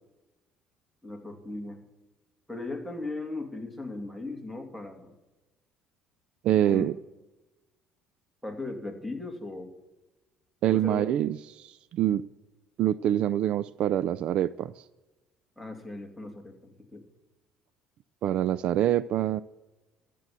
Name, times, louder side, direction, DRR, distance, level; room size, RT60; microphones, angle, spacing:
voice 1, 1.0-1.8 2.5-5.1 6.7-6.9 8.4-9.7 10.7-11.0 12.1-12.3 15.6-17.0, left 2 dB, ahead, 4 dB, 2.6 m, -37 dB
voice 2, 6.4-7.0 10.6-12.2 12.8-14.8 18.2-19.4, right 11 dB, 55° right, 18 dB, 0.4 m, -25 dB
14.0 x 7.7 x 8.4 m, 1.1 s
cardioid pair, 120°, 2 cm